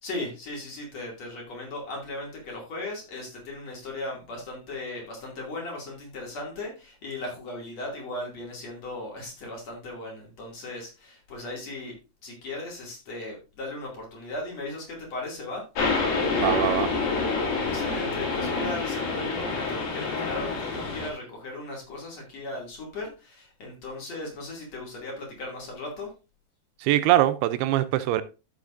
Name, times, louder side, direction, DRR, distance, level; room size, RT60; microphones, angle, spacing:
voice 1, 0.0-11.9 12.2-15.6 17.6-26.1, left 2 dB, 45° left, 3.2 m, -37 dB
sound 1, 15.8-21.1, left 4 dB, 65° left, 3.6 m, -27 dB
voice 2, 16.3-16.9 26.8-28.2, right 14 dB, 85° right, 2.5 m, -22 dB
13.0 x 6.5 x 2.5 m
omnidirectional pair, 4.6 m